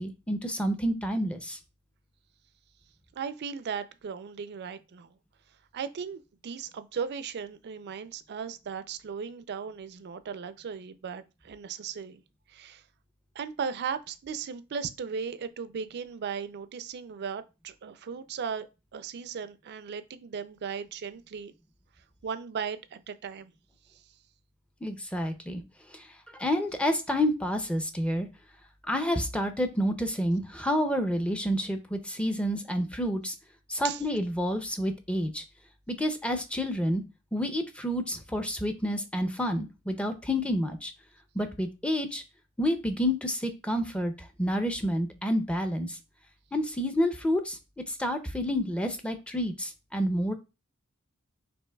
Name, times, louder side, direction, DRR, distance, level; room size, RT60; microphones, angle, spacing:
voice 1, 0.0-1.6 24.8-25.6 25.9-26.1 26.4-28.3 28.9-33.3 33.7-35.4 35.9-37.0 37.3-40.9 41.3-42.2 42.6-46.0 46.5-47.6 47.9-50.3, equal, 5° left, 0.5 m, -29 dB
voice 2, 3.2-5.1 5.7-12.2 12.5-12.8 13.4-21.5 22.2-23.5 33.8-34.0, right 6 dB, 50° right, 0.4 m, -37 dB
6.9 x 2.9 x 2.2 m
head